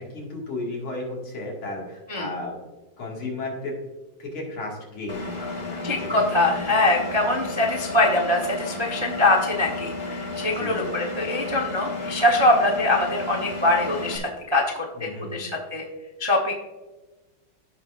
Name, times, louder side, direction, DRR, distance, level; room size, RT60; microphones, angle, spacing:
voice 1, 0.0-2.6 3.0-3.8 4.2-6.6 10.5-10.9 15.0-15.5, left 2 dB, 75° left, -2 dB, 2.9 m, -34 dB
Engine, 5.1-14.2, left 2 dB, 35° left, 0.7 m, -33 dB
voice 2, 5.8-15.8 16.2-16.5, left 2 dB, 30° right, -1 dB, 0.5 m, -23 dB
15.5 x 5.4 x 2.5 m, 1.2 s
omnidirectional pair, 2.3 m